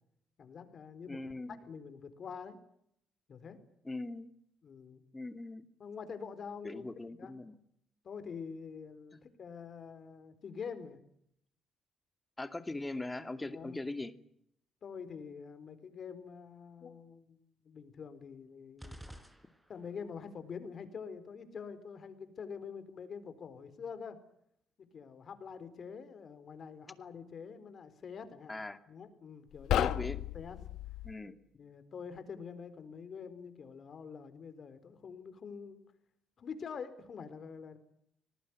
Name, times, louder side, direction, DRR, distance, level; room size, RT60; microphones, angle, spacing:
voice 1, 0.4-1.2 1.5-2.6 3.3-3.6 4.6-5.0 5.8-6.8 7.2-7.3 8.0-11.0 13.5-13.8 14.8-19.0 19.7-24.2 24.8-28.5 28.9-30.6 31.2-35.8 36.4-37.8, left 6 dB, 55° left, 11 dB, 4.2 m, -46 dB
voice 2, 1.1-1.6 3.9-4.3 5.1-5.6 6.6-7.6 9.1-9.2 12.4-14.1 28.5-28.8 29.7-30.2 31.0-31.3, left 2 dB, 15° left, 10 dB, 2.4 m, -40 dB
sound 1, 18.8-20.1, equal, 5° right, 4.1 m, -51 dB
sound 2, 29.5-31.2, left 11 dB, 85° left, 1.2 m, -33 dB
25.5 x 19.0 x 9.6 m, 0.73 s
cardioid pair, 90°, 0 cm